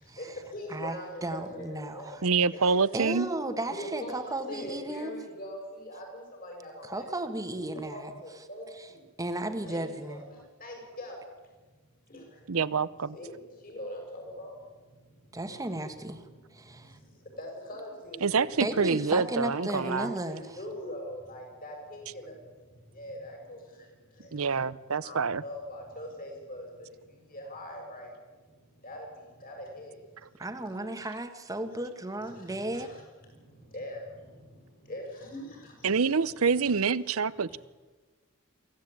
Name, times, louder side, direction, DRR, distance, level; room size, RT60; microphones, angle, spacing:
voice 1, 0.0-3.0 3.7-9.1 9.4-12.6 13.1-19.1 19.7-30.9 31.7-31.8 32.2-36.8 37.3-37.6, equal, 45° left, 1 dB, 6.7 m, -44 dB
voice 2, 1.2-2.2 2.9-5.1 6.9-8.1 9.2-10.2 15.3-16.3 16.6-17.0 18.6-20.4 30.4-32.9, right 1 dB, 15° right, 7 dB, 1.7 m, -34 dB
voice 3, 2.2-3.3 12.5-13.1 18.2-20.1 24.3-25.4 35.8-37.6, right 5 dB, 75° right, 18 dB, 0.8 m, -26 dB
24.5 x 15.5 x 8.8 m, 1.3 s
head